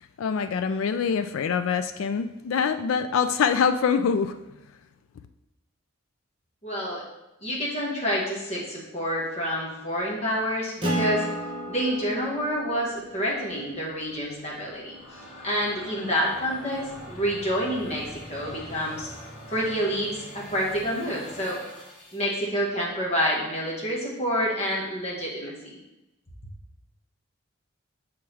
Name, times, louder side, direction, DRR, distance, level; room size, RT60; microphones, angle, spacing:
voice 1, 0.2-4.4, left 6 dB, 75° left, 9 dB, 0.3 m, -24 dB
voice 2, 6.6-7.0 7.4-11.2 11.7-19.1 19.5-21.6 22.1-25.5, equal, 30° left, -5 dB, 1.4 m, -28 dB
Acoustic guitar, 10.8-15.8, right 1 dB, 25° right, 1.0 m, -34 dB
sound 1, 14.6-22.3, equal, 60° left, 1.8 m, -44 dB
6.3 x 3.6 x 4.6 m, 0.99 s
head